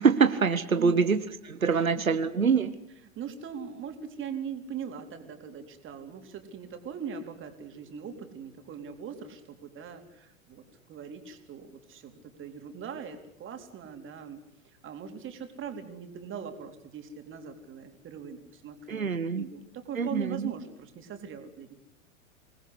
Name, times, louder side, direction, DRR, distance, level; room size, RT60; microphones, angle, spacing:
voice 1, 0.0-2.8 18.9-19.5 20.0-20.5, right 5 dB, 85° right, 10 dB, 1.3 m, -25 dB
voice 2, 3.2-10.6 10.9-14.4 14.8-19.1 19.4-21.7, right 7 dB, 30° right, 6 dB, 4.0 m, -40 dB
26.5 x 19.5 x 8.2 m, 0.78 s
figure-of-eight pair, 90°, 40 cm